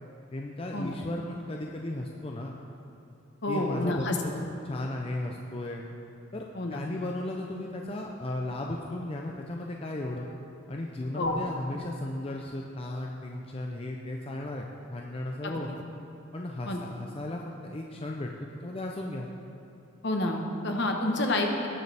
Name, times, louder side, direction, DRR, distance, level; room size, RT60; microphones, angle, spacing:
voice 1, 0.3-2.5 3.5-4.3 4.6-5.9 6.3-10.3 10.7-15.7 16.3-18.3 18.6-19.3, left 1 dB, 25° left, 0 dB, 0.5 m, -35 dB
voice 2, 3.4-4.4 6.5-6.8 11.1-11.4 15.4-15.6 16.7-16.8 20.0-21.7, left 1 dB, 55° left, 2 dB, 1.1 m, -29 dB
18.5 x 6.6 x 3.4 m, 2.7 s
head